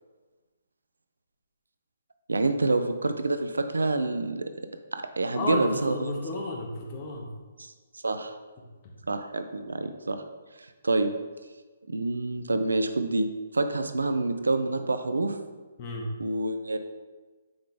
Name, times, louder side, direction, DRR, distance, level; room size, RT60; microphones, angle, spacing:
voice 1, 2.3-4.5 4.9-6.1 7.6-7.7 8.0-8.4 9.1-10.2 10.6-11.1 11.9-13.3 13.5-15.4 16.2-16.8, right 2 dB, 85° right, 8 dB, 0.5 m, -27 dB
voice 2, 5.3-7.3 8.8-8.9 15.8-16.1, left 2 dB, 35° left, -1 dB, 1.4 m, -32 dB
8.7 x 3.9 x 3.5 m, 1.3 s
figure-of-eight pair, 140°, 0 cm